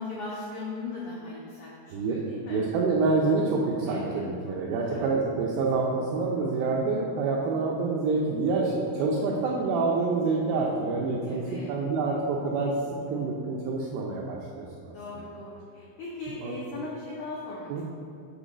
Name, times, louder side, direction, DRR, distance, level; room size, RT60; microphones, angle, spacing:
voice 1, 0.0-2.7 3.9-4.5 4.8-5.0 11.2-11.7 14.9-17.8, left 3 dB, 85° left, -6 dB, 1.7 m, -39 dB
voice 2, 1.9-2.2 2.5-11.4 11.7-12.7 13.1-14.9 16.4-16.5 17.7-17.8, right 3 dB, 85° right, -3 dB, 2.1 m, -27 dB
8.7 x 4.5 x 5.0 m, 2.7 s
omnidirectional pair, 5.0 m